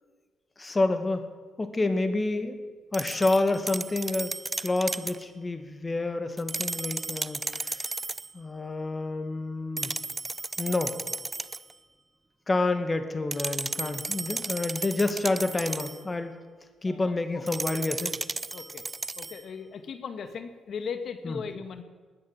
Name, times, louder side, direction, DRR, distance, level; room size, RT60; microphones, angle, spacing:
voice 1, 0.6-1.3 1.6-2.6 2.9-4.3 4.6-7.9 8.3-9.9 10.6-10.9 12.5-16.4 16.8-18.2 21.2-21.4, left 2 dB, 25° left, 8 dB, 1.9 m, -28 dB
sound 1, 2.9-5.2 6.4-8.3 9.8-11.7 13.3-16.0 17.5-19.4, right 3 dB, 25° right, 0.5 m, -34 dB
voice 2, 16.8-17.4 18.5-18.8 19.2-21.8, left 6 dB, 60° left, 8 dB, 1.7 m, -38 dB
20.5 x 9.6 x 7.3 m, 1.4 s
cardioid pair, 90°, 0 cm